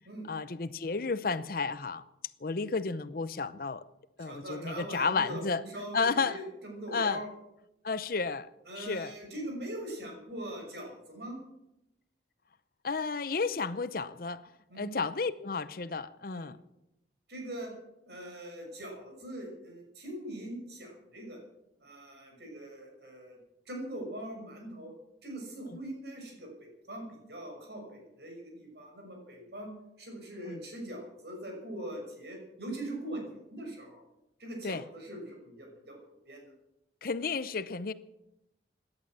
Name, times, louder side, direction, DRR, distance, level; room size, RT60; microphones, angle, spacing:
voice 1, 0.3-2.0 2.4-3.8 4.2-5.6 5.9-6.4 6.9-7.2 7.8-8.5 8.8-9.1 12.8-14.4 14.8-16.6 30.5-30.6 34.6-34.8 37.0-37.9, left 4 dB, 50° left, 0.7 m, -32 dB
voice 2, 4.2-7.3 8.7-11.4 14.7-14.9 16.3-16.5 17.3-17.7 18.1-21.4 21.8-23.4 23.7-24.9 25.2-29.7 30.0-34.0 34.4-36.0 36.3-36.5, right 1 dB, 65° right, 6.1 m, -42 dB
17.5 x 11.0 x 7.4 m
head